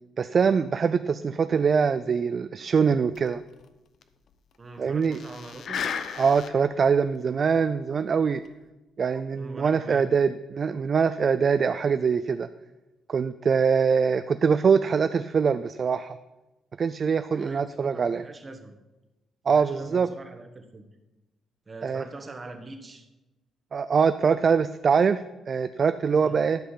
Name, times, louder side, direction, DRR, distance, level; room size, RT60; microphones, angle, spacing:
voice 1, 0.2-3.4 4.8-5.2 6.2-8.4 9.0-12.5 13.1-16.2 16.8-18.2 19.5-20.1 21.8-22.0 23.7-26.6, right 6 dB, 45° right, 11 dB, 0.3 m, -23 dB
sound 1, 3.2-3.3 3.5-3.6 4.0-4.1 5.0-6.8 7.2-7.3 8.3-8.5, left 7 dB, 60° left, 0.7 m, -34 dB
voice 2, 4.6-5.8 9.3-10.1 17.3-18.7 19.5-20.9 21.7-23.1 26.2-26.5, right 2 dB, 30° right, 6 dB, 1.3 m, -43 dB
11.5 x 5.4 x 5.7 m, 1.1 s
cardioid pair, 90°, 0 cm